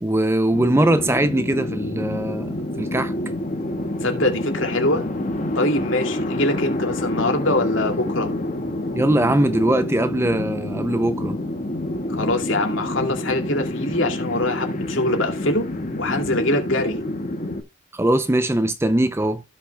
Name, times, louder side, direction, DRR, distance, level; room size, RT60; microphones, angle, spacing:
voice 1, 0.0-3.1 8.9-11.4 17.9-19.4, right 1 dB, 10° right, 0.5 m, -21 dB
sound 1, 0.5-17.6, left 1 dB, 40° left, 1.5 m, -28 dB
voice 2, 4.0-5.1 5.6-8.3 12.1-15.7 16.0-17.0, left 1 dB, 65° left, 2.4 m, -23 dB
16.5 x 5.8 x 2.2 m
head